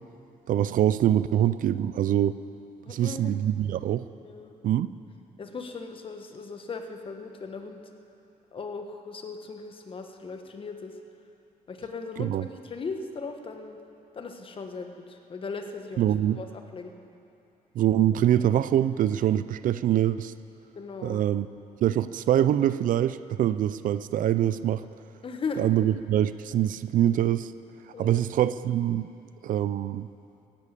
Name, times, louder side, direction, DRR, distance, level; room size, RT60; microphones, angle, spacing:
voice 1, 0.5-2.4 2.9-4.1 4.6-4.9 12.2-12.4 16.0-16.4 17.8-20.3 21.0-21.5 21.8-24.8 25.6-27.5 28.0-29.1 29.4-30.1, right 11 dB, 65° right, 15 dB, 0.5 m, -24 dB
voice 2, 2.8-3.3 4.2-4.6 5.4-7.8 8.5-11.0 11.7-13.8 14.1-16.9 20.7-21.2 25.2-25.6 27.9-28.3, left 4 dB, 35° left, 5 dB, 1.4 m, -38 dB
16.0 x 11.0 x 8.3 m, 2.8 s
cardioid pair, 125°, 15 cm